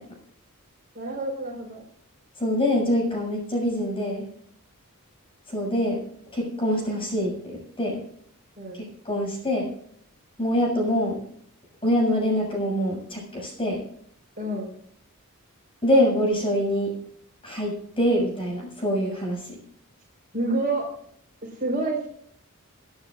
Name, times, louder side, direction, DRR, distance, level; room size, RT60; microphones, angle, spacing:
voice 1, 0.9-1.8 8.6-8.8 14.4-14.7 20.3-20.9 21.4-22.1, right 2 dB, 40° right, -1 dB, 4.5 m, -28 dB
voice 2, 2.4-4.2 5.5-6.0 6.3-8.0 8.7-9.7 10.4-11.2 11.8-13.8 15.8-16.9 17.4-19.6, equal, 25° left, -1 dB, 7.0 m, -25 dB
28.0 x 9.8 x 2.5 m, 0.65 s
head